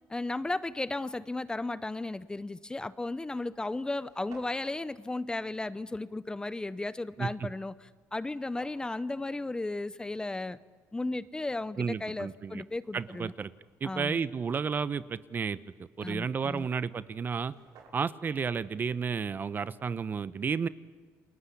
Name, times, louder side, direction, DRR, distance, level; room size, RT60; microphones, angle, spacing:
voice 1, 0.1-10.6 10.9-13.3 13.8-14.2 16.0-16.7, left 2 dB, 15° left, 16 dB, 0.7 m, -35 dB
sound 1, 2.4-2.6 3.3-3.4 3.6-3.7 3.9-4.8 8.2-8.9 11.8-11.9 12.5-13.6 17.0-17.1 17.3-18.3, right 5 dB, 75° right, 5.8 m, -57 dB
voice 2, 7.2-7.5 11.8-12.6 12.9-13.5 13.8-17.5 17.9-20.7, right 6 dB, 35° right, 16 dB, 0.8 m, -32 dB
29.5 x 22.0 x 8.5 m, 1.5 s
cardioid pair, 110°, 6 cm